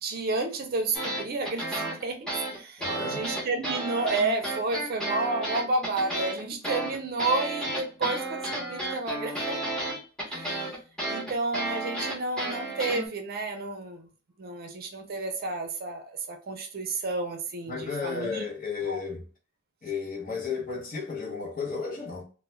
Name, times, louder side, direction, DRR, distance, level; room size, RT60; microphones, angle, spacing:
voice 1, 0.0-9.6 10.2-10.6 11.1-14.1 14.4-18.4 18.9-19.0, right 3 dB, 50° right, 0.5 m, -31 dB
sound 1, 0.9-13.1, right 2 dB, 5° left, 0.8 m, -32 dB
voice 2, 2.8-3.2 17.7-19.3 19.8-22.2, left 5 dB, 45° left, 0.8 m, -33 dB
2.2 x 2.1 x 3.0 m
head